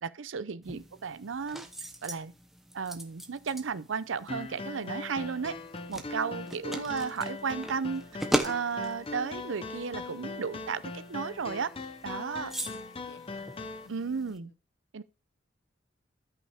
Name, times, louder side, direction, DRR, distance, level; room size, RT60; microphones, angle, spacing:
voice 1, 0.0-1.6 2.0-2.3 2.7-5.6 5.9-8.0 8.4-11.7 12.0-12.5 13.9-14.5 14.9-15.0, right 5 dB, 80° right, 0.6 m, -34 dB
sound 1, 0.6-14.4, right 1 dB, ahead, 0.9 m, -40 dB
sound 2, 4.3-13.9, left 3 dB, 30° left, 0.6 m, -40 dB
voice 2, 6.4-7.1 12.6-14.5, left 2 dB, 65° left, 0.9 m, -56 dB
12.5 x 5.6 x 3.5 m
head